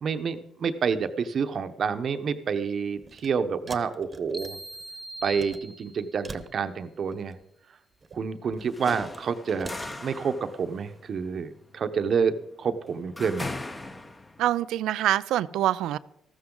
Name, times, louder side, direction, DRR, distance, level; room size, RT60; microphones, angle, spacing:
voice 1, 0.0-4.6 5.2-7.4 8.1-9.7 10.0-13.5, right 6 dB, 55° right, 9 dB, 1.0 m, -28 dB
sound 1, 3.0-3.3 3.7-4.8 5.2-5.6 6.2-7.4 7.9-9.2 9.6-10.0, right 3 dB, 30° right, 1.1 m, -43 dB
sound 2, 4.3-6.3, right 1 dB, 10° right, 0.6 m, -41 dB
sound 3, 8.6-14.5, left 2 dB, 20° left, 1.1 m, -39 dB
voice 2, 14.4-16.0, right 13 dB, 85° right, 17 dB, 0.4 m, -25 dB
14.0 x 13.0 x 3.9 m, 0.77 s
cardioid pair, 90°, 0 cm